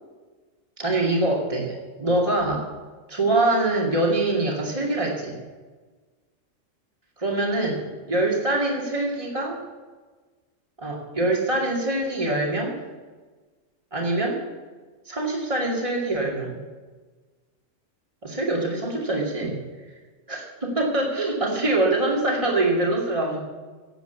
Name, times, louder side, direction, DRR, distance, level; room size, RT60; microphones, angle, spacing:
voice 1, 0.8-2.7 3.1-5.4 7.2-7.8 8.1-9.6 10.8-12.8 13.9-14.4 15.1-16.6 18.2-19.6 20.3-23.4, right 2 dB, 25° right, -2 dB, 2.5 m, -24 dB
17.0 x 7.9 x 8.1 m, 1.4 s
omnidirectional pair, 1.4 m